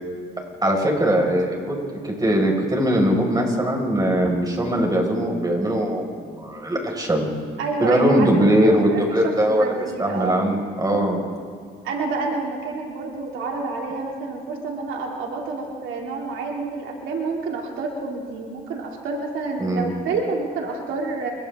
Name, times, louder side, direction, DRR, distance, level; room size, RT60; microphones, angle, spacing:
voice 1, 0.6-1.8 2.0-7.3 7.8-9.7 10.0-11.2 19.6-19.9, right 1 dB, 20° right, 0 dB, 5.1 m, -20 dB
voice 2, 7.6-10.4 11.8-21.3, right 3 dB, 80° right, 0 dB, 2.7 m, -29 dB
29.0 x 25.0 x 3.6 m, 2.1 s
cardioid pair, 90°, 20 cm